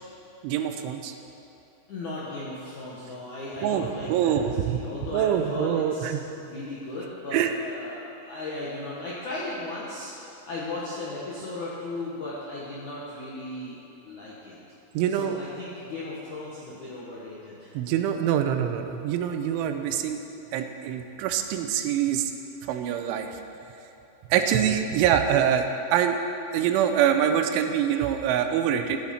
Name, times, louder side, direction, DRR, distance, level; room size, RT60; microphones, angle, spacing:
voice 1, 0.4-1.1 3.6-4.8 5.1-6.2 7.3-7.5 14.9-15.3 17.7-20.2 20.5-22.3 22.7-23.4 24.3-26.2 26.5-29.0, right 9 dB, 85° right, 6 dB, 3.0 m, -25 dB
voice 2, 1.9-6.1 6.4-14.6 15.1-17.7, left 2 dB, 70° left, -7 dB, 1.8 m, -36 dB
16.0 x 9.8 x 4.3 m, 2.8 s
omnidirectional pair, 5.5 m